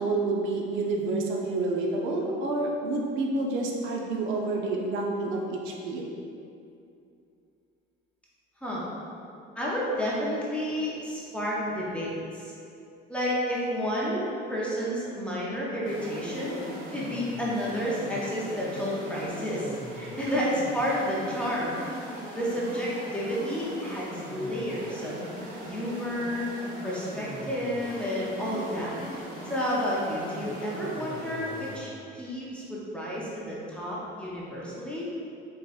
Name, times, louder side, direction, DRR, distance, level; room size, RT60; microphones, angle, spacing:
voice 1, 0.0-6.1, right 2 dB, 70° right, -1 dB, 0.6 m, -28 dB
voice 2, 9.6-12.5 13.1-16.6 16.9-21.8 22.3-25.2 25.6-26.4 26.8-29.0 29.5-35.1, equal, 5° left, -7 dB, 0.5 m, -31 dB
sound 1, 15.8-31.8, equal, 40° right, 0.9 m, -40 dB
4.2 x 3.8 x 2.4 m, 2.6 s
cardioid pair, 175°, 21 cm